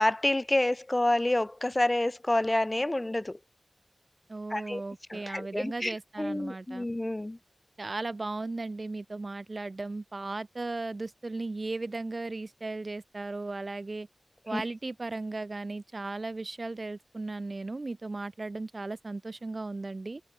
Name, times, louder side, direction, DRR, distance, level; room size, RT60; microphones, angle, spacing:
voice 1, 0.0-3.4 4.5-4.8 5.1-7.4 14.5-14.6, left 1 dB, 25° left, 0.3 m, -28 dB
voice 2, 4.3-6.9 7.8-14.1 14.5-20.2, right 3 dB, 50° right, 0.8 m, -36 dB
wide cardioid pair, 75°, 0 cm